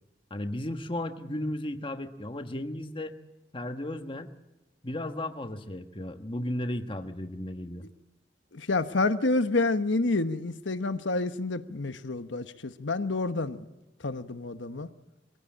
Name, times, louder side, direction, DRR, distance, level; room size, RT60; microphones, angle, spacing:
voice 1, 0.3-3.1 3.5-4.3 4.8-7.9, left 1 dB, 30° left, 1.3 m, -34 dB
voice 2, 8.5-13.6 14.0-14.9, left 3 dB, 85° left, 1.1 m, -28 dB
23.0 x 16.0 x 8.7 m
head